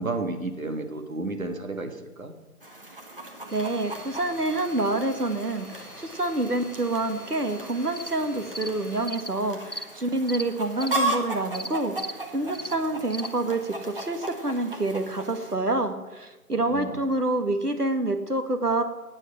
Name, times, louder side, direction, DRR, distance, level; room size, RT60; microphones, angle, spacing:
voice 1, 0.0-2.3 16.5-17.0, right 2 dB, 65° right, 6 dB, 1.8 m, -32 dB
Chicken rooster, 2.6-15.5, right 2 dB, 35° right, 1.7 m, -36 dB
Domestic sounds home sounds, 3.5-9.1, equal, 5° left, 2.1 m, -46 dB
voice 2, 3.5-18.8, right 2 dB, 85° right, 7 dB, 1.8 m, -27 dB
sound 1, 7.9-8.1 8.6-8.7 9.0-9.3 9.7-9.8 10.3-10.4 10.8-11.0 11.5-11.7 12.0-12.1 12.5-12.7 13.1-13.3, equal, 40° left, 0.7 m, -35 dB
13.0 x 9.9 x 7.2 m, 1.1 s
figure-of-eight pair, 165°, 45 cm